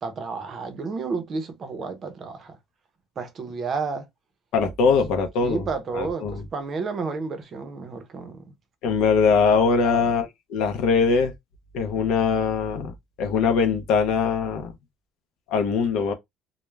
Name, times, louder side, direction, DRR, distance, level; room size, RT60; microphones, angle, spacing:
voice 1, 0.0-2.6 3.2-4.1 5.4-8.4 9.8-10.1, right 4 dB, 35° right, 0.5 m, -31 dB
voice 2, 4.5-5.6 5.9-6.4 8.8-11.3 11.7-14.7 15.5-16.1, left 5 dB, 70° left, 0.5 m, -22 dB
2.2 x 2.0 x 3.1 m
cardioid pair, 165°, 0 cm